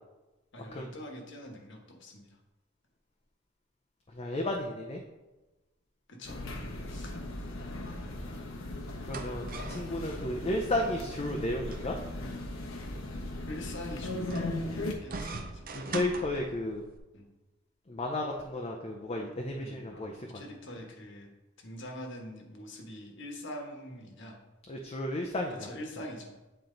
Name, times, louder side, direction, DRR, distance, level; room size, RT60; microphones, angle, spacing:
voice 1, 0.5-2.3 6.1-6.4 6.9-7.1 13.5-15.7 17.1-17.3 19.6-21.3 21.6-24.4 25.5-26.3, left 1 dB, 65° left, 2 dB, 1.4 m, -44 dB
voice 2, 4.1-5.0 9.0-11.9 15.7-16.8 17.9-20.4 24.7-25.7, left 1 dB, 30° left, 0 dB, 0.6 m, -33 dB
sound 1, 6.3-14.9, left 1 dB, 85° left, 1.1 m, -38 dB
sound 2, 8.8-17.0, right 3 dB, 45° right, 0.6 m, -44 dB
8.8 x 4.5 x 3.9 m, 1.1 s
head